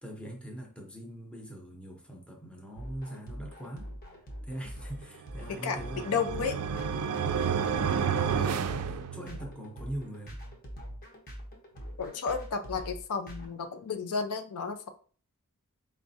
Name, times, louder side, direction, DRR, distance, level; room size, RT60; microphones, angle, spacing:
voice 1, 0.0-3.9 4.4-6.3 7.2-10.4, right 1 dB, 5° left, 0.7 m, -42 dB
sound 1, 2.8-13.5, equal, 45° left, 1.0 m, -43 dB
sound 2, 5.3-9.6, right 7 dB, 75° right, 0.3 m, -31 dB
voice 2, 6.1-6.5 8.4-8.6 12.0-14.9, left 5 dB, 80° left, 0.5 m, -32 dB
4.6 x 3.2 x 2.7 m
head